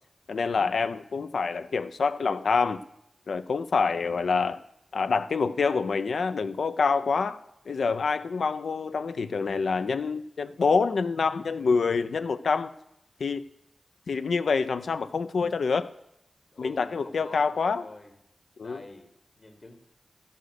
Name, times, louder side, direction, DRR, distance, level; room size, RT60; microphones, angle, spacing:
voice 1, 0.3-2.8 3.3-4.6 4.9-7.4 7.7-12.7 13.2-13.5 14.1-15.9 16.6-17.8 18.6-18.8, left 5 dB, 85° left, 12 dB, 0.5 m, -26 dB
voice 2, 16.5-18.2 18.6-19.8, left 2 dB, 55° left, 5 dB, 1.8 m, -47 dB
14.5 x 5.2 x 6.5 m, 0.81 s
cardioid pair, 45°, 0 cm